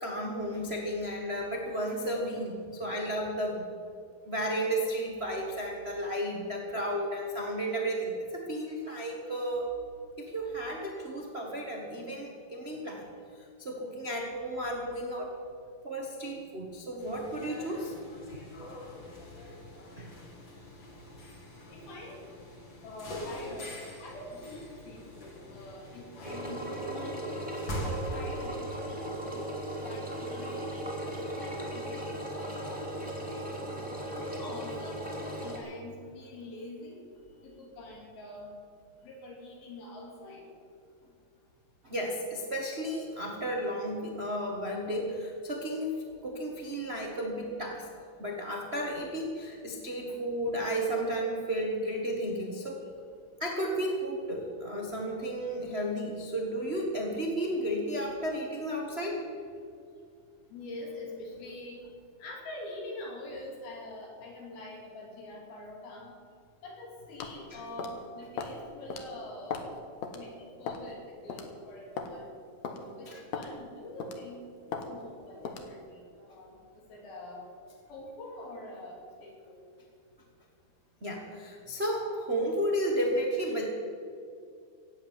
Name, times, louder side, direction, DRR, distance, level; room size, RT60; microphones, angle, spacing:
voice 1, 0.0-3.6 4.2-9.7 10.2-13.1 13.3-15.3 15.8-17.9 19.4-19.6 20.0-20.1 41.8-47.9 48.2-52.9 53.4-59.2 67.5-67.6 73.1-73.2 81.0-83.6, equal, 70° right, 0 dB, 0.5 m, -33 dB
sound 1, 17.0-28.1, equal, 35° left, 2.9 m, -44 dB
voice 2, 21.7-22.2 22.8-27.2 27.7-33.5 34.1-37.0 37.4-38.5 39.0-40.4 60.5-61.8 62.2-66.1 66.6-69.6 70.1-72.3 72.9-74.4 74.7-76.6 76.9-77.5 77.9-79.6, left 1 dB, 80° left, -1 dB, 4.8 m, -45 dB
Engine, 26.2-35.6, right 1 dB, 5° right, 2.1 m, -37 dB
sound 2, 67.2-67.4 67.8-68.0 68.4-68.6 68.9-69.0 69.5-69.7 70.0-70.2 70.7-70.9 71.3-71.5 72.0-72.1 72.6-72.8 73.3-73.5 74.0-74.2 74.7-74.9 75.4-75.7, left 6 dB, 60° left, 2.1 m, -37 dB
15.5 x 8.4 x 9.2 m, 2.3 s
omnidirectional pair, 4.2 m